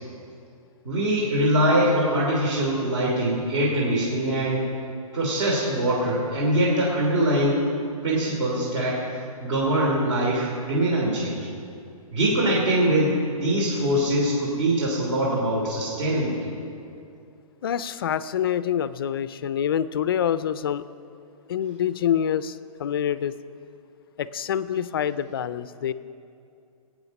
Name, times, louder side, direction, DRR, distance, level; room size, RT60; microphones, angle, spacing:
voice 1, 0.8-4.6 5.1-7.6 8.0-9.0 9.4-11.4 12.1-13.1 13.4-16.5, right 1 dB, 55° right, -3 dB, 3.1 m, -23 dB
voice 2, 17.6-20.8 21.5-23.3 24.2-25.9, left 9 dB, 40° left, 15 dB, 0.4 m, -26 dB
19.5 x 8.8 x 5.4 m, 2.5 s
hypercardioid pair, 165°, 19 cm